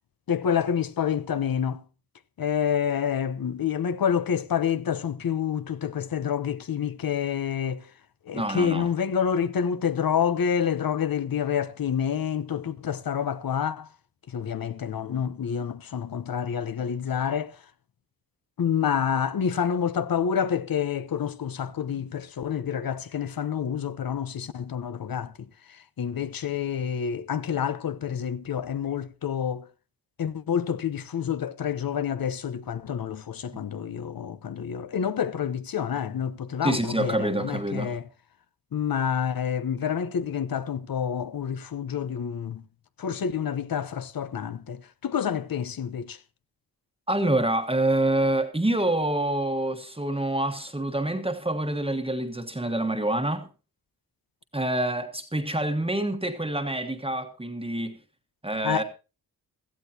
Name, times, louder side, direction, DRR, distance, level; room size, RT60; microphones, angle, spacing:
voice 1, 0.3-1.8 2.4-7.9 8.3-13.9 14.3-17.6 18.6-29.7 30.2-38.0 38.7-42.6 43.0-46.2 58.6-58.8, left 8 dB, 65° left, 0.9 m, -28 dB
voice 2, 8.3-8.9 36.6-38.0 47.1-53.5 54.5-58.0 58.4-58.8, right 1 dB, 15° right, 1.4 m, -26 dB
16.5 x 14.0 x 2.8 m
wide cardioid pair, 130°, 38 cm